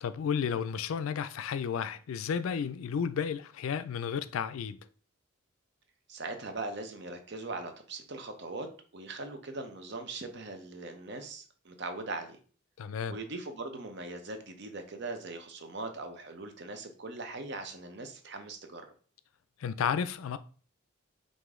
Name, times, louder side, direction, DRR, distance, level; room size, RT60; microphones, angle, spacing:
voice 1, 0.0-4.8 12.8-13.2 19.6-20.4, left 7 dB, 80° left, 0.4 m, -32 dB
voice 2, 6.1-8.7 8.9-12.4 13.1-18.9, right 2 dB, 55° right, 0.7 m, -40 dB
5.0 x 2.6 x 3.6 m
head